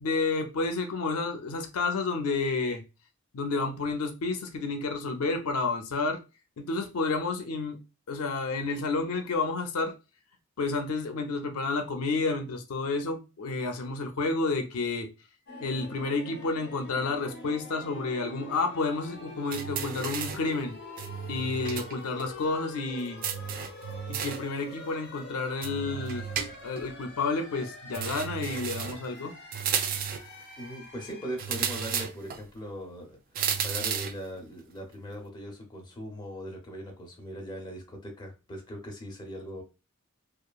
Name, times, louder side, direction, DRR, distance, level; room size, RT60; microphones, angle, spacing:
voice 1, 0.0-2.8 3.3-6.2 6.6-7.8 8.1-9.9 10.6-15.1 15.6-20.7 21.3-23.2 24.1-26.3 26.6-29.3, left 3 dB, 85° left, 0.5 m, -30 dB
sound 1, 15.5-31.4, left 2 dB, 50° left, 0.8 m, -45 dB
sound 2, 19.5-20.5 21.0-21.9 22.2-22.3 23.2-24.5 25.6-26.9 27.9-29.1 29.5-30.3 31.4-32.4 33.3-34.2, right 7 dB, 40° right, 0.3 m, -33 dB
voice 2, 30.6-33.2 33.6-39.6, equal, 20° left, 0.7 m, -40 dB
2.8 x 2.4 x 2.3 m
head